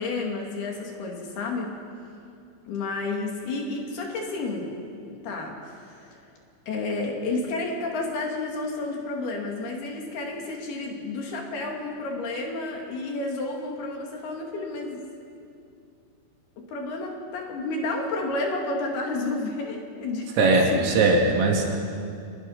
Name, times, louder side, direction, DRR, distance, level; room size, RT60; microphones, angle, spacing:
voice 1, 0.0-1.8 2.7-4.8 5.1-6.2 6.7-15.0 16.6-20.3 20.6-20.9, left 2 dB, 60° left, 1 dB, 3.7 m, -31 dB
voice 2, 20.4-21.8, right 2 dB, 85° right, 0 dB, 5.4 m, -20 dB
26.0 x 20.0 x 5.7 m, 2.4 s
omnidirectional pair, 5.8 m